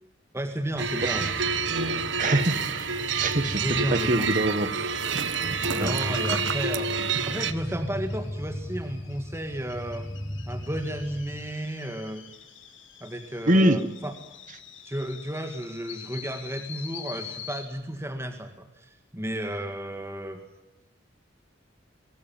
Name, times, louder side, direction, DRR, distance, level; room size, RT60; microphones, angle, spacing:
voice 1, 0.3-1.5 2.2-2.4 3.5-4.3 5.7-6.9 7.3-10.1 10.5-12.3 13.0-14.1 14.8-20.4, right 1 dB, 15° right, 5 dB, 1.9 m, -33 dB
sound 1, 0.7-11.5, equal, 15° left, 1.0 m, -38 dB
sound 2, 0.8-7.5, right 5 dB, 70° right, 1.5 m, -28 dB
voice 2, 1.0-1.3 1.9-4.7 5.7-6.0 13.5-13.8, right 1 dB, 45° right, 12 dB, 1.5 m, -25 dB
sound 3, 3.8-17.6, left 8 dB, 80° left, 4.1 m, -47 dB
24.0 x 18.5 x 9.0 m, 0.98 s
head